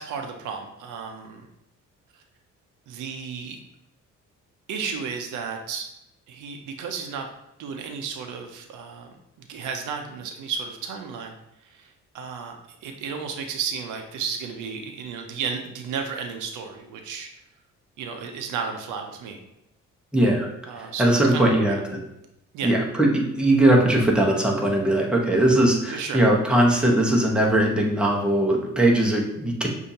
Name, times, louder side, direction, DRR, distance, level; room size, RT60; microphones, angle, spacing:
voice 1, 0.0-1.5 2.9-3.6 4.7-5.9 6.3-7.3 7.6-9.1 9.5-11.3 11.8-11.9 12.1-12.6 12.8-17.3 18.0-19.4 20.7-21.8 22.5-22.7 25.9-26.2, right 6 dB, 85° right, 4 dB, 0.7 m, -33 dB
voice 2, 20.1-20.5 20.8-22.0 22.6-23.1 23.4-29.7, right 1 dB, 5° right, -2 dB, 1.0 m, -20 dB
6.4 x 2.7 x 2.8 m, 0.84 s
cardioid pair, 90°, 30 cm